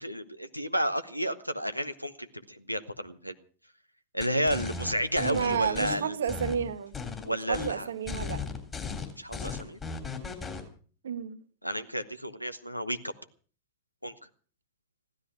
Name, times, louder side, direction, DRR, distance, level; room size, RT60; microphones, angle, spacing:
voice 1, 0.0-3.3 4.1-6.2 7.2-7.9 9.2-9.8 11.6-13.1 14.0-14.1, equal, 90° left, 1.0 m, -31 dB
sound 1, 4.2-5.9 6.3-7.3 7.5-7.7 8.1-10.6, left 5 dB, 20° left, 3.4 m, -36 dB
voice 2, 5.2-6.9 7.5-8.4 11.0-11.4, right 7 dB, 65° right, 1.1 m, -31 dB
15.5 x 12.5 x 6.2 m
figure-of-eight pair, 90°, 0 cm